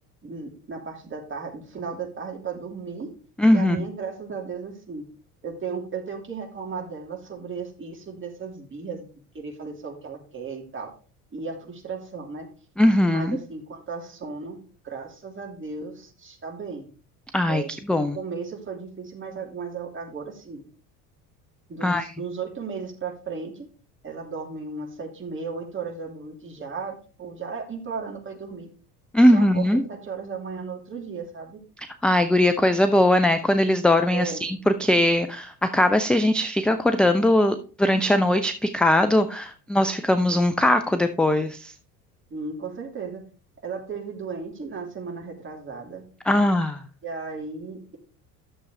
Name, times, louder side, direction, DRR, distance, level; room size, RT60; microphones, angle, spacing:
voice 1, 0.2-3.1 3.5-5.1 5.4-9.0 9.3-10.9 11.3-12.5 13.1-16.9 17.5-20.6 21.7-23.7 24.0-28.7 29.3-31.6 34.1-34.4 42.3-43.2 43.6-46.0 47.0-48.0, right 5 dB, 25° right, 1 dB, 3.0 m, -35 dB
voice 2, 3.4-3.9 12.8-13.4 17.3-18.2 21.8-22.1 29.1-29.8 32.0-41.7 46.3-46.8, left 1 dB, ahead, 9 dB, 0.4 m, -20 dB
12.0 x 6.9 x 3.3 m, 0.38 s
figure-of-eight pair, 70°, 46 cm